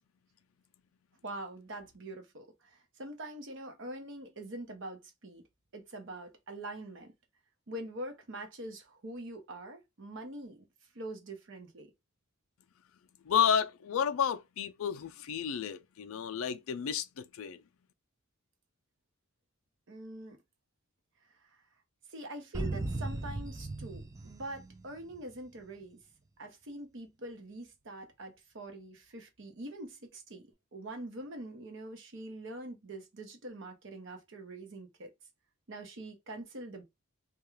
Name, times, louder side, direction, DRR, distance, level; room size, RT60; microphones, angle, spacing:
voice 1, 1.2-5.4 5.7-7.1 7.7-11.9 19.9-20.4 21.3-21.6 22.1-26.0 26.4-30.4 30.7-35.1 35.7-36.8, right 1 dB, 55° right, 0.7 m, -44 dB
voice 2, 13.2-17.6, left 8 dB, 65° left, 0.4 m, -31 dB
sound 1, 22.5-25.3, right 2 dB, 15° right, 0.3 m, -37 dB
2.3 x 2.2 x 3.0 m
head